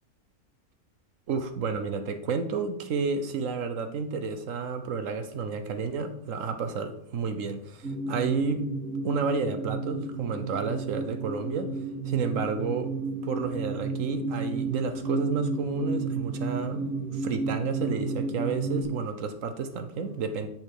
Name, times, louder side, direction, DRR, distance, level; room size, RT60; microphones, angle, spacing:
voice 1, 1.3-8.7 9.0-11.7 12.0-12.9 13.2-20.5, right 5 dB, 70° right, 1.2 m, -31 dB
sound 1, 7.8-18.8, right 3 dB, 55° right, 1.9 m, -32 dB
7.6 x 5.4 x 4.8 m
omnidirectional pair, 1.4 m